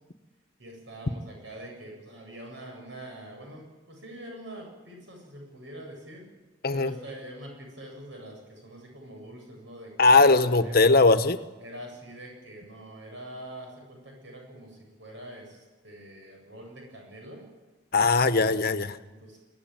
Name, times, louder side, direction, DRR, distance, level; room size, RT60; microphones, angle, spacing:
voice 1, 0.6-6.2 6.7-10.9 11.6-17.4 19.1-19.4, right 1 dB, 75° right, 1 dB, 7.9 m, -44 dB
voice 2, 10.0-11.4 17.9-18.9, left 3 dB, 55° left, 11 dB, 1.1 m, -20 dB
23.0 x 18.0 x 9.1 m, 1.2 s
head